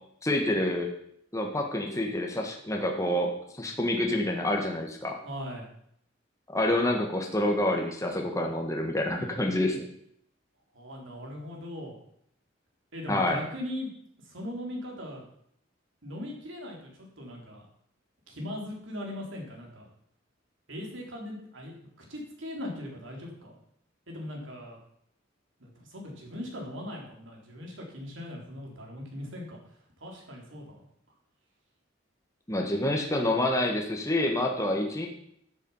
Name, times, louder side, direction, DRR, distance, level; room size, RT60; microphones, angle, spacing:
voice 1, 0.2-0.9 1.3-5.1 6.5-9.9 13.1-13.4 32.5-35.1, left 1 dB, 15° left, 1 dB, 1.6 m, -27 dB
voice 2, 5.2-5.7 10.7-12.0 12.9-13.9 14.2-15.2 16.0-17.6 18.3-19.8 20.7-23.6 24.1-24.8 25.6-29.6 30.0-30.8, left 1 dB, 80° right, 0 dB, 3.8 m, -39 dB
13.5 x 7.6 x 5.7 m, 0.69 s
head